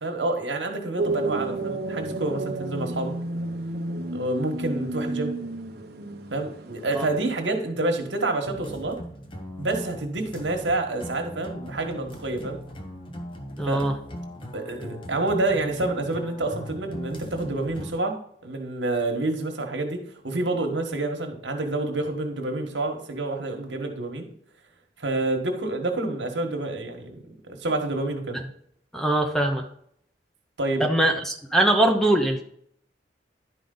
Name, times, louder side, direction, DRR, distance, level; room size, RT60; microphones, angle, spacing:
voice 1, 0.0-3.1 4.1-5.3 6.3-9.0 9.6-12.6 13.7-13.8 14.5-24.3 25.0-27.3 27.6-28.4 30.6-30.8, right 2 dB, 80° right, 3 dB, 1.5 m, -28 dB
sound 1, 1.0-7.5, right 2 dB, 55° right, 1.0 m, -32 dB
sound 2, 8.5-17.9, equal, 30° left, 1.0 m, -39 dB
voice 2, 13.6-13.9 28.9-29.6 30.8-32.4, right 1 dB, ahead, 3 dB, 0.8 m, -22 dB
11.0 x 5.0 x 3.9 m, 0.68 s
head